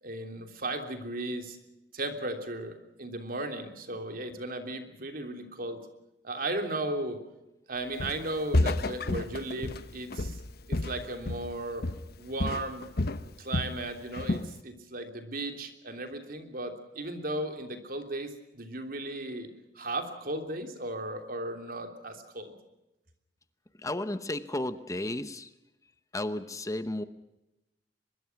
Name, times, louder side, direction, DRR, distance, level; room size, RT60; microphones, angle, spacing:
voice 1, 0.0-1.6 1.9-5.8 6.2-7.2 7.7-10.4 10.7-11.9 12.2-12.9 13.4-19.5 19.7-22.5, right 2 dB, 55° right, 6 dB, 3.3 m, -36 dB
Walk footsteps, 8.0-8.3 8.5-11.6 11.8-12.1 12.4-13.8 14.1-14.5, left 2 dB, 60° left, 1.0 m, -30 dB
voice 2, 23.8-25.5 26.1-27.0, left 1 dB, 20° left, 12 dB, 0.9 m, -33 dB
23.5 x 22.0 x 5.9 m, 0.93 s
head